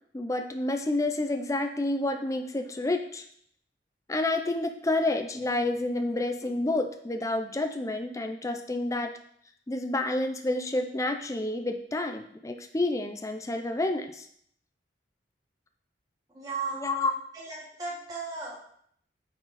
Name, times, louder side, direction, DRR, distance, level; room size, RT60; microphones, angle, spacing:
voice 1, 0.1-3.2 4.1-9.1 9.7-14.3 16.8-17.1, left 2 dB, 20° left, 6 dB, 0.5 m, -29 dB
voice 2, 16.3-16.9 17.3-18.6, right 4 dB, 20° right, -5 dB, 1.3 m, -35 dB
9.4 x 4.7 x 4.1 m, 0.66 s
head